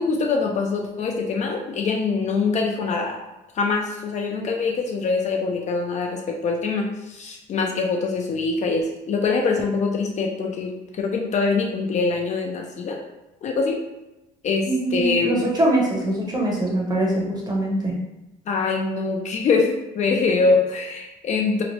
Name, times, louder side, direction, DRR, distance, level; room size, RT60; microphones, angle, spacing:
voice 1, 0.0-3.2 3.5-13.0 13.4-13.8 14.4-15.5 18.5-21.6, left 4 dB, 45° left, 2 dB, 0.4 m, -24 dB
voice 2, 14.6-17.9, right 1 dB, 25° right, -3 dB, 0.8 m, -23 dB
2.9 x 2.0 x 2.9 m, 0.97 s
cardioid pair, 110°, 17 cm